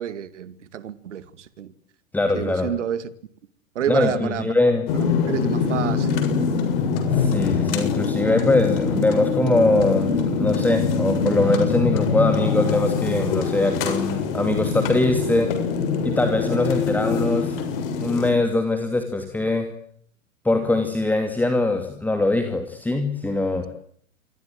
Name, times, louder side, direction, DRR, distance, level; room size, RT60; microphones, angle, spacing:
voice 1, 0.0-1.7 2.3-3.1 3.7-4.5 5.3-6.3, right 10 dB, 60° right, 2.4 m, -29 dB
voice 2, 2.1-2.7 3.9-4.9 7.1-15.5 16.0-17.6 18.0-19.7 20.4-23.7, left 2 dB, 5° left, 2.6 m, -22 dB
sound 1, 4.9-18.3, left 5 dB, 45° left, 7.3 m, -23 dB
28.0 x 22.0 x 7.8 m
figure-of-eight pair, 110°, 41 cm